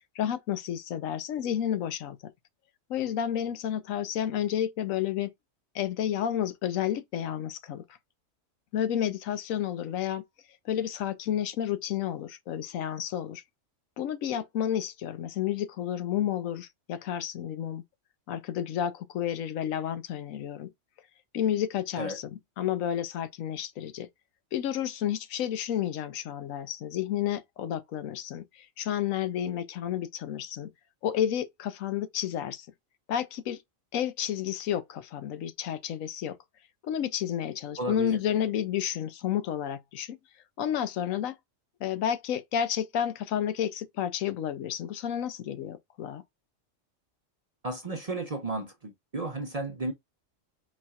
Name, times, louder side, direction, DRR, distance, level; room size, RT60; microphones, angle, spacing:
voice 1, 0.1-2.3 2.9-5.3 5.7-7.8 8.7-10.2 10.6-13.4 14.0-17.8 18.3-20.7 21.3-24.1 24.5-30.7 31.0-32.7 33.1-33.6 33.9-36.4 36.8-40.2 40.6-41.4 41.8-46.2, left 10 dB, 80° left, 1.1 m, -31 dB
voice 2, 37.8-38.2 47.6-49.9, right 2 dB, 35° right, 0.6 m, -33 dB
4.2 x 4.2 x 2.3 m
omnidirectional pair, 1.4 m